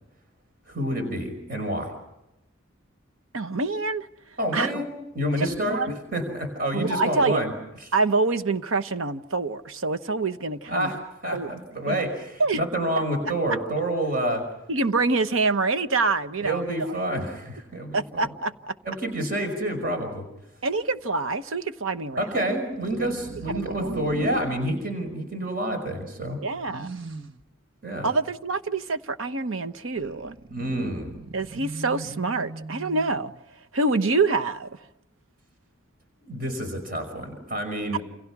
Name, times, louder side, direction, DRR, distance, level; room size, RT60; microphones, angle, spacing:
voice 1, 0.7-1.9 4.4-5.8 6.1-7.5 10.7-14.5 16.4-18.3 18.9-20.3 22.2-26.4 27.8-28.1 30.5-31.1 36.2-38.0, right 1 dB, 45° right, 5.4 m, -28 dB
voice 2, 3.3-4.1 4.5-4.8 5.4-6.0 6.7-7.4 7.9-10.9 11.3-11.5 11.9-12.0 12.4-12.6 14.7-16.9 17.9-18.7 20.6-22.4 23.5-24.2 26.4-26.9 28.0-30.3 31.3-33.3 33.7-34.8, right 3 dB, 85° right, 1.0 m, -26 dB
sound 1, 22.6-24.8 26.7-27.4 30.0-33.4, right 3 dB, 70° right, 1.4 m, -39 dB
28.5 x 28.5 x 6.1 m
head